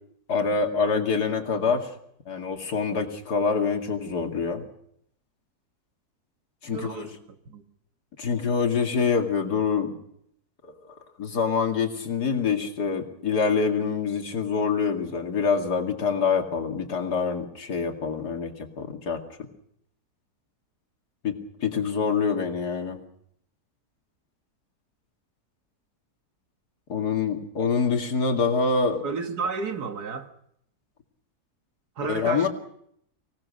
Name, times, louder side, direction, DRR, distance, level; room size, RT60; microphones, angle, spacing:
voice 1, 0.3-1.9 2.3-4.6 6.6-7.2 8.2-9.9 11.2-19.2 21.2-23.0 26.9-29.0 32.0-32.5, left 5 dB, 90° left, 2.8 m, -25 dB
voice 2, 6.7-7.1 7.5-7.6 29.0-30.3 32.0-32.5, right 5 dB, 80° right, 2.2 m, -31 dB
24.5 x 18.5 x 6.4 m
omnidirectional pair, 1.7 m